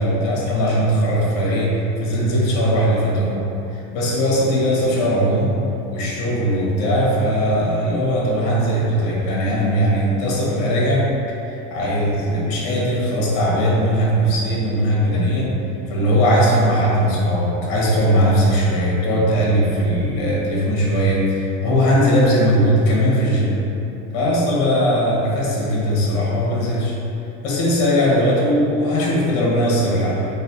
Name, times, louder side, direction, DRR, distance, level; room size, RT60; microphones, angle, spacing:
voice 1, 0.0-3.4 3.7-5.6 5.9-23.6 24.1-27.0 27.4-30.3, equal, 55° left, -5 dB, 1.0 m, -19 dB
4.0 x 2.2 x 2.7 m, 2.9 s
supercardioid pair, 155°, 35 cm